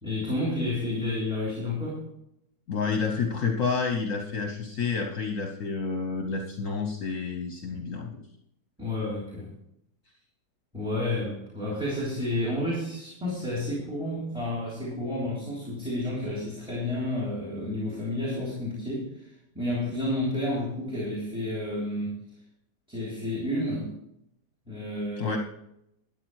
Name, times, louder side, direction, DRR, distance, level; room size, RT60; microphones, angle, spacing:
voice 1, 0.0-2.0 8.8-9.5 10.7-19.2 19.5-22.1 22.9-23.9 24.7-25.4, left 1 dB, 5° right, -4 dB, 3.3 m, -30 dB
voice 2, 2.7-8.2 25.2-25.4, left 5 dB, 55° left, 3 dB, 1.4 m, -29 dB
13.5 x 8.9 x 4.8 m, 0.77 s
omnidirectional pair, 1.7 m